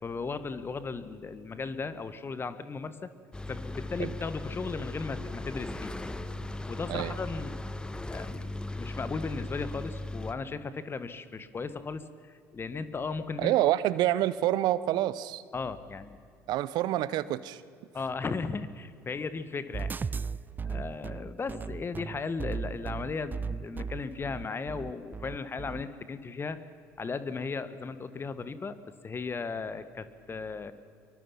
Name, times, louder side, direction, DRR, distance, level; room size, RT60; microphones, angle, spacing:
voice 1, 0.0-3.1 3.5-5.9 6.6-7.6 8.1-13.5 15.5-16.2 17.9-19.9 20.6-26.6 27.0-28.8 29.0-30.7, left 4 dB, 30° left, 12 dB, 1.6 m, -36 dB
sound 1, 3.3-10.3, left 2 dB, 10° left, 1.3 m, -38 dB
voice 2, 13.4-15.4 16.5-17.6, right 14 dB, 60° right, 17 dB, 0.9 m, -27 dB
sound 2, 19.7-25.8, right 5 dB, 25° right, 0.5 m, -36 dB
23.5 x 22.5 x 5.9 m, 2.2 s
hypercardioid pair, 65°, 8 cm